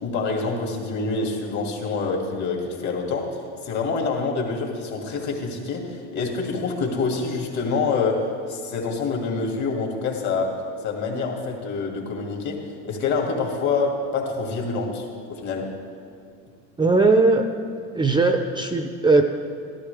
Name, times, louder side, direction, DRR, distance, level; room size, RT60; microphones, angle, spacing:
voice 1, 0.0-10.6 10.8-15.7, left 4 dB, 55° left, 0 dB, 2.5 m, -26 dB
voice 2, 16.8-17.5 17.9-19.2, right 3 dB, 15° right, 6 dB, 0.6 m, -18 dB
13.0 x 13.0 x 3.5 m, 2.4 s
supercardioid pair, 100°, 35 cm